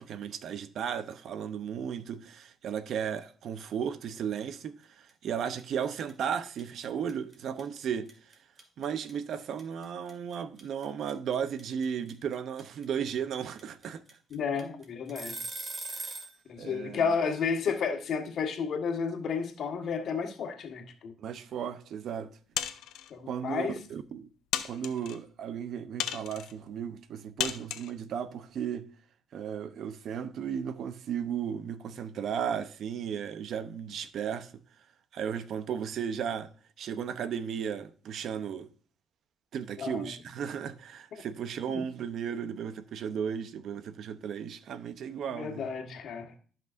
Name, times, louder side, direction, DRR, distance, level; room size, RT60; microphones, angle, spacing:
voice 1, 0.0-8.1 8.8-14.0 15.9-16.2 16.6-17.1 21.2-22.3 23.3-24.3 24.6-28.9 29.3-34.5 35.1-36.5 36.8-38.7 39.5-45.6, right 8 dB, 70° right, 0.7 m, -35 dB
sound 1, 5.1-5.3 5.6-16.4, right 3 dB, 40° right, 2.1 m, -40 dB
voice 2, 14.3-15.4 16.5-21.1 23.1-23.8 39.8-40.1 41.1-41.2 41.7-41.8 45.3-46.3, left 6 dB, 65° left, 1.5 m, -32 dB
sound 2, 22.6-23.1 23.8-23.9 24.5-25.2 26.0-26.5 27.4-27.9, left 11 dB, 90° left, 0.7 m, -34 dB
13.5 x 5.9 x 2.6 m
cardioid pair, 90°, 0 cm